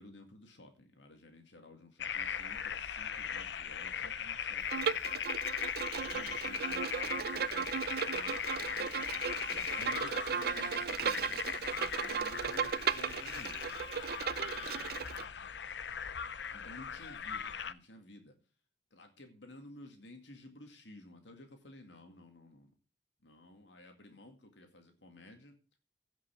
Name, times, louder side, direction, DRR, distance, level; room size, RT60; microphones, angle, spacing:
voice 1, 0.0-5.2 6.0-13.7 14.5-15.2 16.5-18.3 18.9-22.7 23.2-25.6, left 1 dB, 90° left, 4 dB, 2.3 m, -54 dB
sound 1, 2.0-17.7, left 7 dB, 70° left, 0.7 m, -39 dB
Bowed string instrument, 4.7-15.2, right 7 dB, 60° right, 0.5 m, -36 dB
16.0 x 6.0 x 5.9 m, 0.35 s
head